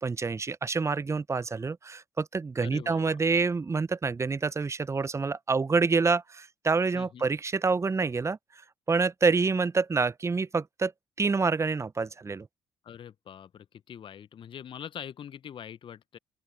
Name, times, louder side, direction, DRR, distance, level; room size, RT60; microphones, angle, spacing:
voice 1, 0.0-8.4 8.9-10.9 11.2-12.5, right 4 dB, 25° right, 0.7 m, -27 dB
voice 2, 2.6-3.2 6.9-7.3 12.8-16.2, left 9 dB, 50° left, 1.0 m, -43 dB
open air
hypercardioid pair, 45°, 11 cm